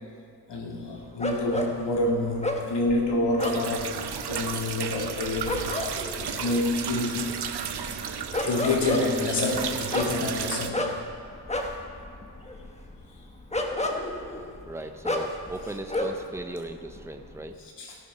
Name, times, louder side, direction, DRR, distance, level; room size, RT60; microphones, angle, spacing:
voice 1, 0.5-4.0 4.2-5.5 6.4-7.3 8.4-10.9 17.8-18.0, left 2 dB, 80° left, 0 dB, 2.3 m, -27 dB
sound 1, 1.2-16.4 16.7-17.5, left 1 dB, 15° left, 1.3 m, -32 dB
sound 2, 3.4-10.7, right 7 dB, 70° right, 0.9 m, -33 dB
voice 2, 14.7-17.6, right 2 dB, 5° right, 6 dB, 0.8 m, -37 dB
17.0 x 6.6 x 5.5 m, 2.3 s
cardioid pair, 85°, 41 cm